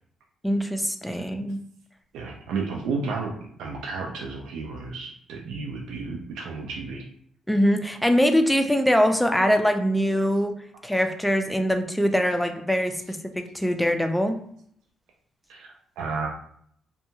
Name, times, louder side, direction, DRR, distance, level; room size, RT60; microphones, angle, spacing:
voice 1, 0.4-1.6 7.5-10.5 10.8-14.4, equal, 5° left, 6 dB, 0.4 m, -23 dB
voice 2, 2.1-3.3 3.6-7.0 15.5-15.7 16.0-16.3, right 4 dB, 85° right, 0 dB, 0.4 m, -32 dB
2.6 x 2.2 x 2.8 m, 0.65 s
cardioid pair, 90°, 0 cm